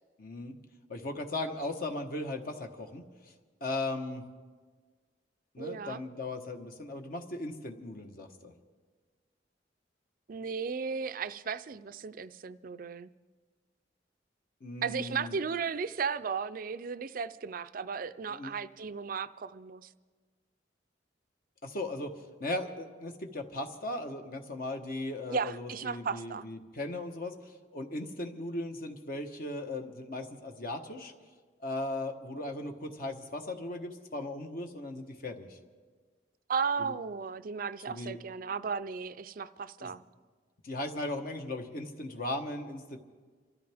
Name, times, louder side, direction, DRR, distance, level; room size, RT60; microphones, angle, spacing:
voice 1, 0.2-0.6 0.9-3.0 3.6-4.2 5.5-8.5 14.6-15.4 18.3-18.5 21.6-22.1 22.4-31.1 31.6-35.6 36.8-37.0 37.9-38.2 39.8-39.9 40.6-43.0, left 2 dB, 55° left, 4 dB, 1.1 m, -37 dB
voice 2, 5.6-6.0 10.3-13.1 14.8-19.9 25.3-26.5 36.5-40.0, right 5 dB, 50° right, 13 dB, 0.4 m, -35 dB
27.5 x 13.5 x 3.5 m, 1.5 s
head